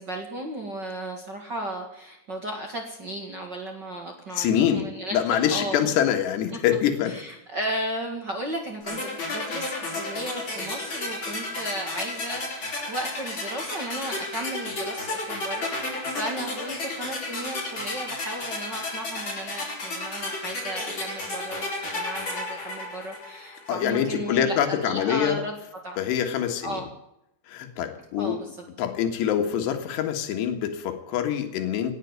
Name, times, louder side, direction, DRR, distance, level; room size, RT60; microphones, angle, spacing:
voice 1, 0.0-5.9 6.5-6.6 7.0-21.6 21.9-25.5 25.8-26.0 26.6-26.9 28.2-28.5, right 1 dB, 40° right, 2 dB, 1.5 m, -35 dB
voice 2, 4.4-4.9 5.1-7.1 23.7-25.4 26.0-26.8 27.5-28.4 28.8-31.9, left 9 dB, 80° left, 4 dB, 3.7 m, -25 dB
sound 1, 8.9-23.8, left 2 dB, 30° left, 4.4 m, -32 dB
18.0 x 8.2 x 9.4 m, 0.83 s
omnidirectional pair, 4.9 m